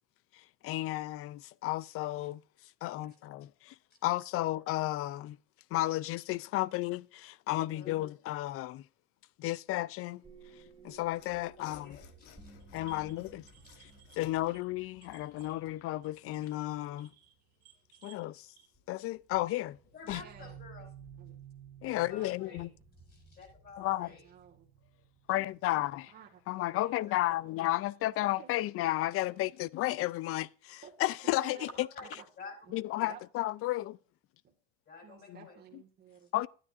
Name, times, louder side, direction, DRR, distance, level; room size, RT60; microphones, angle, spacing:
voice 1, 0.3-2.4 2.8-3.8 4.0-5.4 5.7-8.8 9.4-10.2 10.8-12.0 12.7-13.4 13.8-13.9 14.2-17.1 18.0-18.5 18.9-19.8 20.1-20.2 21.8-22.7 23.8-24.1 25.3-26.1 26.5-31.9 32.7-34.0 36.3-36.5, left 16 dB, 50° left, 0.4 m, -33 dB
voice 2, 7.6-7.9 11.3-12.5 12.8-13.3 13.6-13.7 19.9-20.9 21.8-22.6 23.1-24.2 26.7-27.3 31.9-32.1 32.4-32.5 32.9-33.1 34.9-35.6, left 4 dB, 35° left, 5.4 m, -51 dB
sound 1, 10.2-17.1 18.7-18.8 19.3-26.4, right 6 dB, 10° right, 2.3 m, -55 dB
Mechanisms / Sawing, 11.1-15.9, left 10 dB, 85° left, 1.3 m, -57 dB
sound 2, 12.6-18.7, right 11 dB, 65° right, 2.6 m, -62 dB
voice 3, 20.0-20.6 21.2-21.4 22.1-22.7 24.1-24.7 25.7-25.9 26.1-26.4 28.0-28.7 30.8-30.9 31.2-31.7 32.0-32.3 32.6-33.2 34.4-34.5 35.0-36.3, right 8 dB, 35° right, 1.9 m, -53 dB
12.5 x 9.8 x 2.5 m
cardioid pair, 140°, 29 cm